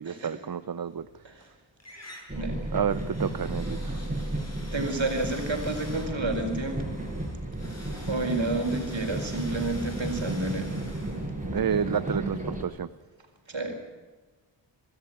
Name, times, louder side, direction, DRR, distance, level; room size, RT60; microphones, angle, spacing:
voice 1, 0.0-1.1 2.7-4.0 11.5-12.9, right 7 dB, 45° right, 15 dB, 0.7 m, -30 dB
sound 1, 0.9-1.5 1.8-12.7, left 1 dB, 30° left, 6.8 m, -48 dB
sound 2, 2.3-12.6, right 1 dB, 15° right, 6.4 m, -33 dB
voice 2, 4.7-7.0 8.1-10.8 13.5-13.7, right 2 dB, 65° right, 4 dB, 4.8 m, -30 dB
24.0 x 13.0 x 8.7 m, 1.4 s
cardioid pair, 45°, 48 cm